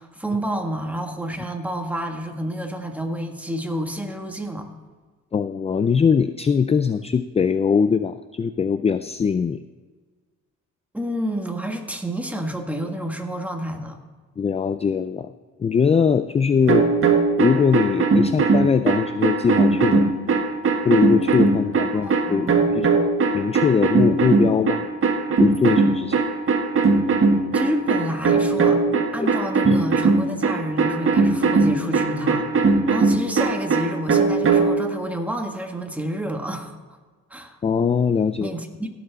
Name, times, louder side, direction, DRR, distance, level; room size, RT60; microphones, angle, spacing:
voice 1, 0.0-4.7 10.9-14.0 21.9-22.7 27.5-28.8 29.1-36.8 37.3-37.6 38.4-38.9, right 1 dB, 5° right, 3 dB, 1.7 m, -29 dB
voice 2, 5.3-9.6 14.4-15.3 15.6-16.9 17.4-20.1 20.8-24.8 25.4-26.2 29.2-29.3 29.6-29.8 37.6-38.5, left 6 dB, 20° left, 12 dB, 0.4 m, -21 dB
sound 1, 16.7-34.8, right 4 dB, 45° right, 1.8 m, -19 dB
16.5 x 6.9 x 4.0 m, 1.4 s
cardioid pair, 90°, 30 cm